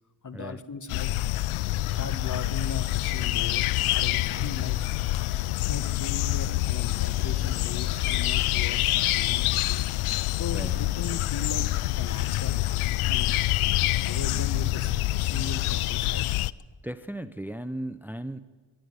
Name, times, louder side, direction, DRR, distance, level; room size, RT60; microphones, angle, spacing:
voice 1, 0.2-1.1 1.9-4.8 5.7-9.9 10.3-11.7 11.9-12.8 13.1-13.4 14.0-16.3, left 4 dB, 40° left, 11 dB, 1.5 m, -38 dB
sound 1, 0.9-16.5, left 16 dB, 90° left, 0.6 m, -26 dB
voice 2, 10.5-10.9 16.8-18.4, right 1 dB, 5° right, 12 dB, 0.9 m, -36 dB
23.5 x 12.0 x 9.8 m, 1.4 s
cardioid pair, 60°, 48 cm